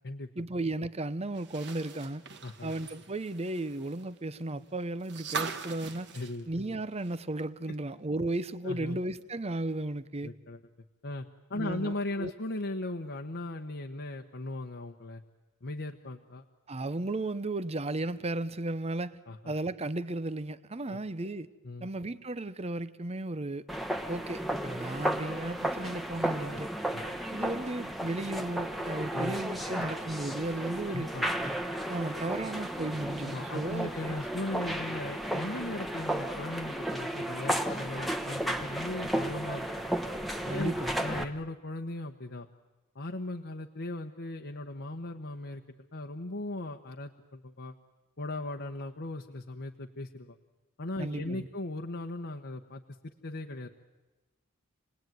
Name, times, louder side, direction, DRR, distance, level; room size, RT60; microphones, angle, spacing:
voice 1, 0.4-2.2 2.6-6.1 6.5-10.3 11.5-11.9 12.2-12.3 16.7-19.2 19.5-21.5 21.8-23.6 24.1-26.7 27.3-31.1 31.9-34.1 40.5-40.9 51.0-51.5, right 2 dB, 30° right, 0.8 m, -35 dB
sound 1, 1.3-7.4 7.7-7.8 9.2-9.3, right 5 dB, 55° right, 1.6 m, -41 dB
voice 2, 2.4-2.7 6.1-6.5 8.6-9.0 10.2-10.6 11.0-15.2 15.6-16.4 19.3-19.5 20.9-21.0 21.6-21.9 26.5-26.6 26.9-27.0 29.1-29.4 30.9-31.3 32.1-32.2 32.5-32.6 33.2-39.7 40.5-40.7 41.0-42.5 42.9-45.6 45.9-47.7 48.2-50.4 50.8-53.7, left 2 dB, 55° left, 1.2 m, -38 dB
sound 2, 23.7-41.2, right 1 dB, ahead, 1.2 m, -34 dB
29.0 x 20.0 x 9.3 m
head